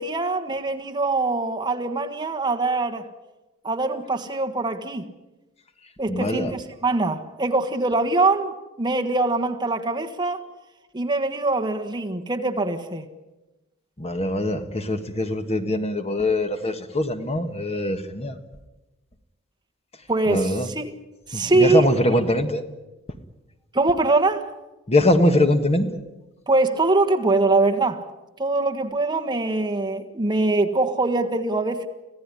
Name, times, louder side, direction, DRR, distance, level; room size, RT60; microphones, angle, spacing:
voice 1, 0.0-3.1 3.6-5.1 6.0-10.4 10.9-13.0 20.1-20.9 21.3-21.9 23.7-24.5 26.5-28.0 28.4-31.9, right 2 dB, 20° right, 1.5 m, -23 dB
voice 2, 6.1-6.5 14.0-18.4 20.3-20.7 21.3-22.6 24.9-26.0, left 1 dB, 30° left, 1.6 m, -22 dB
26.0 x 16.5 x 9.9 m
head